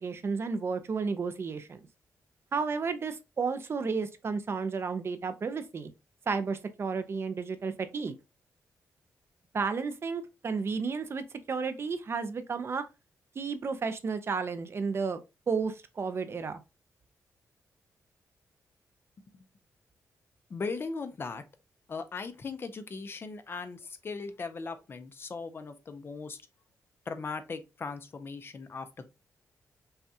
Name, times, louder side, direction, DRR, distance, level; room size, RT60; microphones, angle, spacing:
voice 1, 0.0-1.8 2.5-5.9 6.3-8.2 9.5-12.8 13.4-15.2 15.5-16.6, right 5 dB, 45° right, 0.5 m, -32 dB
voice 2, 20.5-21.4 21.9-26.4 27.1-29.1, left 4 dB, 40° left, 0.6 m, -38 dB
5.5 x 2.3 x 2.7 m
cardioid pair, 115°, 6 cm